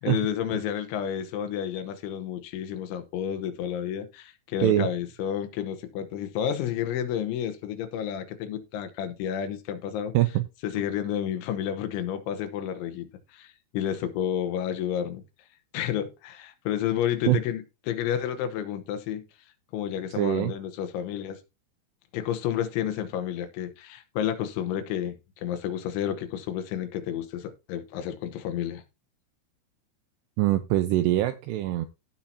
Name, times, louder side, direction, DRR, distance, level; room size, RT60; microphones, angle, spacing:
voice 1, 0.0-10.1 10.6-15.2 15.7-19.2 19.7-21.4 22.1-28.8, left 10 dB, 80° left, 3.3 m, -31 dB
voice 2, 20.2-20.5 30.4-31.9, right 14 dB, 85° right, 2.4 m, -23 dB
16.5 x 5.6 x 2.8 m
omnidirectional pair, 5.5 m